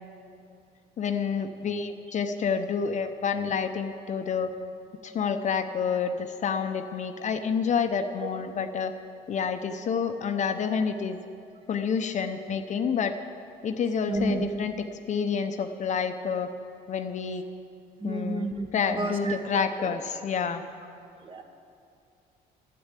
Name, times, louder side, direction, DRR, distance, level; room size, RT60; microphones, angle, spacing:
voice 1, 1.0-4.5 5.0-8.9 9.3-11.2 11.7-13.2 13.6-14.7 15.1-16.5 16.9-17.4 18.0-18.5 18.7-20.6, left 6 dB, 45° left, 7 dB, 0.8 m, -28 dB
voice 2, 14.1-14.5 18.0-20.0 21.2-21.4, right 2 dB, 30° right, 5 dB, 1.3 m, -31 dB
12.0 x 7.8 x 9.8 m, 2.5 s
cardioid pair, 110°, 17 cm